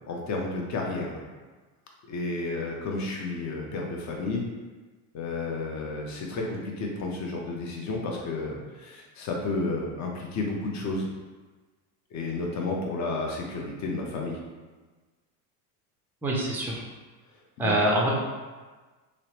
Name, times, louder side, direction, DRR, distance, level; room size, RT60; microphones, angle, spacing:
voice 1, 0.1-1.2 2.1-4.4 5.1-11.1 12.1-14.4 17.6-17.7, left 3 dB, 40° left, 0 dB, 0.6 m, -31 dB
voice 2, 16.2-16.8 17.6-18.1, right 1 dB, 5° right, -3 dB, 0.4 m, -24 dB
3.0 x 2.0 x 2.8 m, 1.3 s
supercardioid pair, 105°, 45 cm